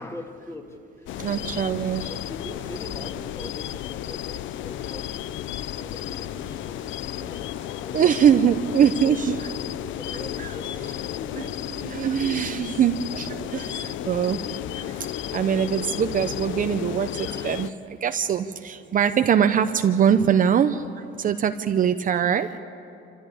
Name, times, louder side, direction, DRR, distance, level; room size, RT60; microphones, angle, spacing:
voice 1, 0.0-1.1 1.4-1.5 2.1-5.4 5.7-6.9 7.3-8.1 8.4-8.6 9.0-9.2 9.5-11.7 17.2-17.5, left 1 dB, 15° left, 4 dB, 2.0 m, -42 dB
sound 1, 1.1-17.7, left 12 dB, 75° left, 0.6 m, -33 dB
voice 2, 1.2-2.1 7.9-9.5 10.4-10.6 11.4-11.5 11.8-14.4 15.3-17.7 18.0-20.8 21.2-22.6, right 8 dB, 45° right, 9 dB, 0.7 m, -22 dB
sound 2, 5.6-16.3, equal, 35° left, 5.3 m, -47 dB
26.5 x 14.0 x 8.5 m, 2.7 s
cardioid pair, 125°, 20 cm